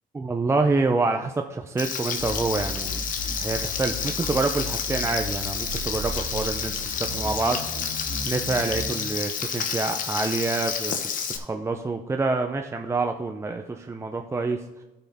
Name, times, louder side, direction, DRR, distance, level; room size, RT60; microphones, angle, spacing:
voice 1, 0.1-3.0 3.4-7.6 8.3-11.0 11.4-14.6, right 3 dB, 15° right, 4 dB, 0.5 m, -27 dB
Frying (food), 1.8-11.4, left 7 dB, 50° left, 1.0 m, -30 dB
sound 1, 2.2-9.0, equal, 85° left, 2.1 m, -35 dB
13.0 x 5.7 x 3.6 m, 1.1 s
cardioid pair, 110°, 17 cm